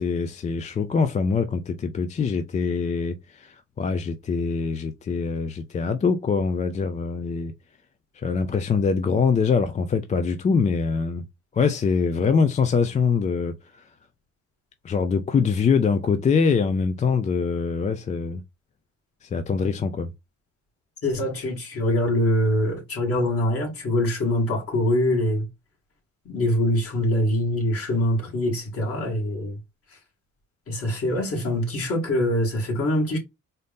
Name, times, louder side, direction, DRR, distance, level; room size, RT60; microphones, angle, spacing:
voice 1, 0.0-7.5 8.1-11.2 11.5-13.9 14.8-18.4 19.2-20.1, left 5 dB, 25° left, 0.3 m, -24 dB
voice 2, 21.0-25.5 26.2-29.6 29.9-30.0 30.7-33.2, left 1 dB, 50° left, 2.3 m, -24 dB
4.0 x 2.6 x 3.5 m
cardioid pair, 155°, 30 cm